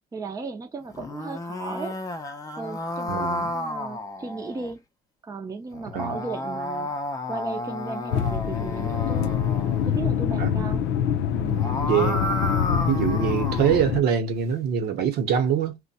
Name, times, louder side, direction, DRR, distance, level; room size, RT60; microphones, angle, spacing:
voice 1, 0.1-2.0 2.6-4.8 5.2-6.9 7.3-9.4 9.8-10.8 11.3-11.8, right 3 dB, 20° right, 0.6 m, -35 dB
sound 1, 0.8-4.7 5.7-9.9 11.3-13.8, left 1 dB, 20° left, 0.6 m, -32 dB
voice 2, 3.1-3.5 5.9-6.2 10.4-10.9 11.9-12.3 12.9-15.8, right 8 dB, 70° right, 0.9 m, -24 dB
sound 2, 8.1-14.0, left 8 dB, 90° left, 0.5 m, -25 dB
2.6 x 2.2 x 4.0 m
cardioid pair, 110°, 17 cm